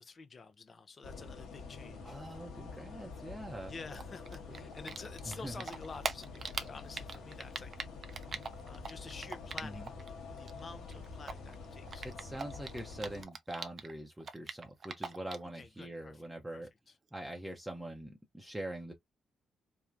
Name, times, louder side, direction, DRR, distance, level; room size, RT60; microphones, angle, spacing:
voice 1, 0.0-2.2 3.7-7.7 8.7-12.1 15.5-16.2 16.5-17.0, left 4 dB, 45° left, 0.5 m, -49 dB
sound 1, 1.0-13.2, left 4 dB, 75° left, 1.0 m, -47 dB
voice 2, 2.0-3.7 5.3-5.6 9.6-9.9 12.0-16.7 17.1-18.9, right 1 dB, 15° right, 0.7 m, -43 dB
Typing, 3.9-5.3 5.6-10.1 10.3-13.9 14.2-15.5, right 5 dB, 50° right, 0.5 m, -41 dB
3.1 x 2.1 x 2.4 m
supercardioid pair, 50°, 0 cm